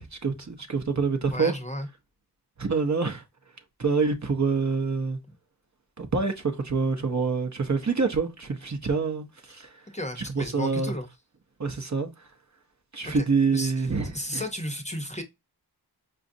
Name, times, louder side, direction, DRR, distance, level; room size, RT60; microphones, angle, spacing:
voice 1, 0.0-1.5 2.6-3.2 3.8-5.2 6.0-9.7 10.3-10.9 11.6-12.1 12.9-14.4, right 4 dB, 45° right, 0.7 m, -26 dB
voice 2, 1.3-1.9 9.9-11.1 13.1-13.3 13.5-13.9 14.1-15.2, equal, 15° left, 0.7 m, -33 dB
4.9 x 2.4 x 2.6 m
wide cardioid pair, 65°, 41 cm